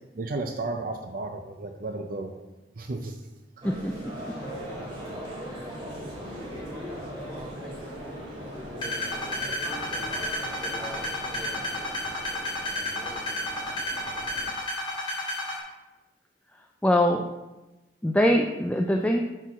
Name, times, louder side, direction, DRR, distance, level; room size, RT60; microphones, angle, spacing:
voice 1, 0.1-2.4 2.8-3.2, right 2 dB, 50° right, 4 dB, 0.6 m, -33 dB
sound 1, 3.6-12.2, equal, 25° right, 2.6 m, -40 dB
sound 2, 4.1-14.5, right 1 dB, 75° right, 1.6 m, -45 dB
voice 2, 6.1-9.4 9.8-13.4, left 2 dB, 10° right, -5 dB, 3.0 m, -45 dB
sound 3, 8.8-15.6, left 1 dB, 25° left, 2.6 m, -31 dB
voice 3, 16.8-17.2 18.0-19.2, left 1 dB, 5° left, 2 dB, 0.4 m, -22 dB
8.0 x 4.6 x 5.9 m, 1.1 s
head